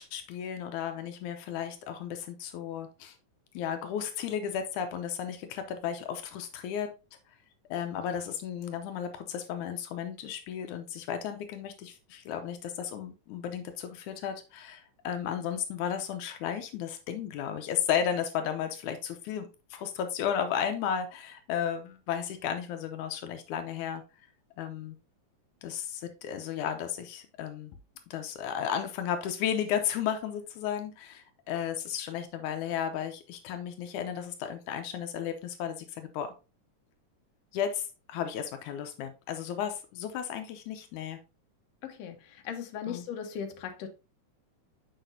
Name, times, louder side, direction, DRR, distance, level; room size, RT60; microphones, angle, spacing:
voice 1, 0.0-3.2 3.5-6.9 7.7-24.0 24.6-25.0 25.6-27.8 28.1-36.3 37.5-41.2 42.8-43.1, left 8 dB, 80° left, 2.1 m, -34 dB
voice 2, 41.8-42.2 42.5-43.9, left 8 dB, 65° left, 1.8 m, -37 dB
7.2 x 5.9 x 2.6 m
omnidirectional pair, 3.5 m